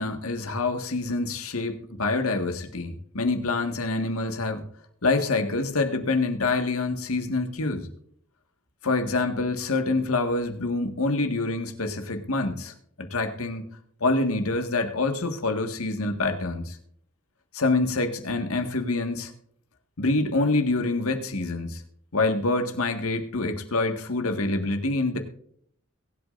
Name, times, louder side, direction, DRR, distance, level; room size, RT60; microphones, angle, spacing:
voice 1, 0.0-4.6 5.0-7.9 8.8-13.7 14.0-16.8 17.5-19.3 20.0-21.8 22.1-25.2, left 3 dB, 85° left, 6 dB, 1.8 m, -26 dB
22.0 x 8.5 x 2.6 m, 0.65 s
head